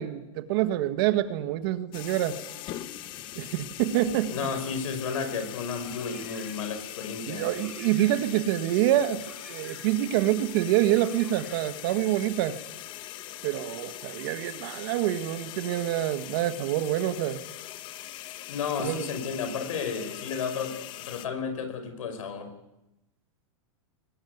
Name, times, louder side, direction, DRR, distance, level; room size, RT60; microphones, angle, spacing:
voice 1, 0.0-2.4 3.4-4.3 7.3-9.2 9.5-12.6 13.4-17.4 18.8-19.1, right 13 dB, 45° right, 10 dB, 1.6 m, -26 dB
sound 1, 1.9-21.3, left 14 dB, 30° left, 1.0 m, -41 dB
voice 2, 4.3-7.5 18.5-22.5, left 5 dB, 75° left, 8 dB, 5.5 m, -32 dB
Car, 5.8-6.8 7.4-8.4 9.1-10.1 10.8-11.8, right 1 dB, ahead, 4.6 m, -51 dB
21.5 x 20.5 x 9.4 m, 0.96 s
supercardioid pair, 160°, 17 cm